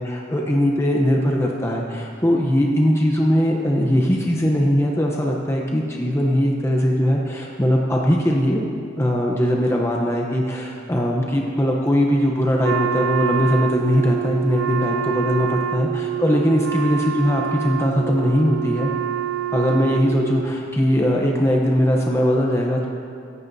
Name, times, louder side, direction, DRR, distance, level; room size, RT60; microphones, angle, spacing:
voice 1, 0.0-8.6 9.0-18.9 19.5-22.8, equal, 15° left, -1 dB, 0.8 m, -20 dB
Wind instrument woodwind instrument, 12.6-20.5, right 9 dB, 75° right, 0.4 m, -26 dB
17.5 x 15.0 x 2.7 m, 2.4 s
head